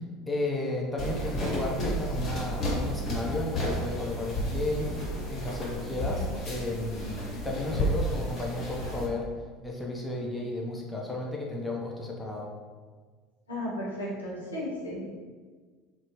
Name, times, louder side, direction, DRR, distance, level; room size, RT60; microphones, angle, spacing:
voice 1, 0.3-4.9 5.3-9.3 9.6-12.5, left 2 dB, 5° left, -2 dB, 0.4 m, -33 dB
sound 1, 1.0-9.1, equal, 30° left, 0.8 m, -32 dB
voice 2, 13.5-15.1, left 1 dB, 80° left, -6 dB, 0.7 m, -34 dB
2.6 x 2.0 x 2.9 m, 1.5 s
figure-of-eight pair, 70°, 0 cm